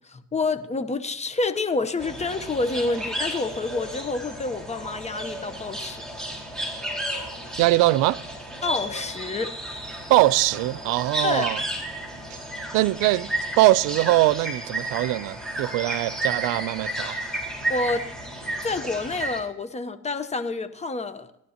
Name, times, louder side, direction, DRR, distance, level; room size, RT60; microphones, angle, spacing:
voice 1, 0.3-6.0 8.6-9.5 11.2-11.5 17.7-18.1 18.6-21.3, left 3 dB, 20° left, 0.8 m, -28 dB
sound 1, 2.0-19.4, right 1 dB, ahead, 4.1 m, -33 dB
voice 2, 7.6-8.2 10.1-11.6 12.3-12.4 12.7-13.3 13.6-17.2, right 18 dB, 75° right, 0.5 m, -21 dB
20.0 x 11.5 x 2.9 m
cardioid pair, 105°, 33 cm